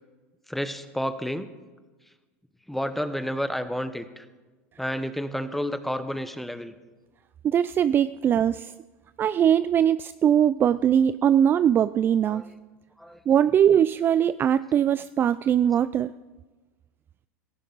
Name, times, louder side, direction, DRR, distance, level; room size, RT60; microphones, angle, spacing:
voice 1, 0.5-1.5 2.7-4.2 4.8-6.7 12.3-12.4 13.0-13.2, equal, ahead, 11 dB, 1.0 m, -30 dB
voice 2, 7.4-8.7 9.2-12.4 13.3-16.1, right 9 dB, 30° right, 16 dB, 0.3 m, -21 dB
17.0 x 15.0 x 4.0 m, 1.3 s
supercardioid pair, 105°, 7 cm